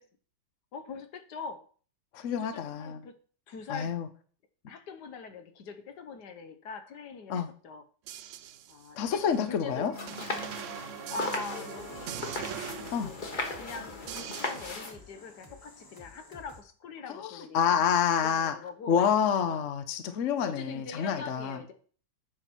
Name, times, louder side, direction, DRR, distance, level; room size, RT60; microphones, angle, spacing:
voice 1, 0.7-1.6 2.4-3.1 3.5-3.9 4.7-7.8 8.7-9.2 9.5-9.9 11.1-12.6 13.0-17.9 18.2-19.1 19.5-19.7 20.5-21.7, left 5 dB, 70° left, 8 dB, 1.5 m, -42 dB
voice 2, 2.1-3.1 3.7-4.1 7.3-7.5 9.0-9.9 12.9-13.1 17.1-18.5 18.9-21.6, left 7 dB, 55° left, 9 dB, 1.0 m, -28 dB
sound 1, 8.1-14.7, right 11 dB, 85° right, 0.6 m, -42 dB
sound 2, 9.9-14.9, left 3 dB, 30° left, 1.1 m, -37 dB
sound 3, 11.4-16.6, left 2 dB, 15° left, 1.3 m, -53 dB
8.9 x 5.8 x 4.5 m, 0.42 s
omnidirectional pair, 1.9 m